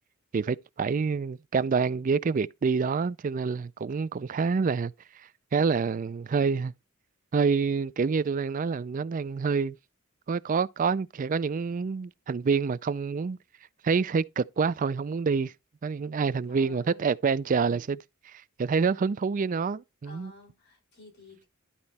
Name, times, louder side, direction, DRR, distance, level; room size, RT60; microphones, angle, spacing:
voice 1, 0.3-4.9 5.5-6.7 7.3-9.8 10.3-13.4 13.8-15.5 15.8-18.0 18.3-20.3, right 5 dB, 40° right, 0.3 m, -27 dB
voice 2, 16.5-17.0 17.6-17.9 20.0-21.5, left 3 dB, 55° left, 4.7 m, -51 dB
11.5 x 4.4 x 4.1 m
head